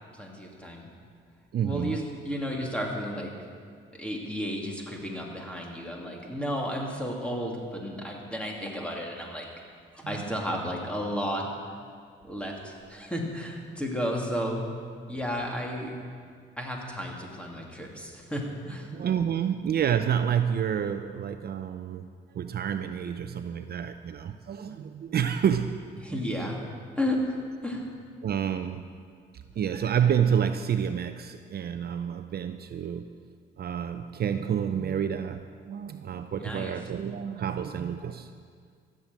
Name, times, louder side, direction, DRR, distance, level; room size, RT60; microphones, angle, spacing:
voice 1, 0.1-0.9 1.6-3.3 4.0-9.5 9.9-11.5 12.2-14.7 15.1-16.0 16.6-18.9 26.0-26.6 27.0-27.8 36.4-36.7, equal, 5° left, 0 dB, 2.7 m, -33 dB
voice 2, 1.5-2.0 6.2-6.3 10.0-10.4 18.9-22.1 22.3-25.8 26.1-26.7 28.2-28.8 29.3-33.1 33.6-38.3, right 8 dB, 50° right, 9 dB, 0.6 m, -29 dB
14.0 x 7.7 x 9.0 m, 2.1 s
cardioid pair, 90°, 20 cm